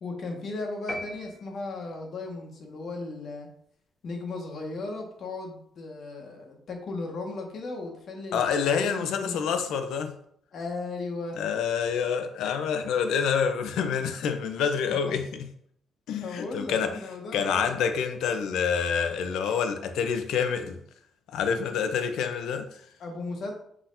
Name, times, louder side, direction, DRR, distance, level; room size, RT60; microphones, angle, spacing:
voice 1, 0.0-3.5 4.0-9.6 10.5-11.4 16.2-17.8 23.0-23.5, left 3 dB, 60° left, 1.5 m, -36 dB
sound 1, 0.9-2.1, left 1 dB, 20° left, 1.2 m, -39 dB
voice 2, 8.3-10.1 11.4-15.2 16.1-17.0 17.3-20.8 21.3-22.7, left 7 dB, 85° left, 0.6 m, -27 dB
6.2 x 5.8 x 2.6 m
cardioid pair, 90°, 0 cm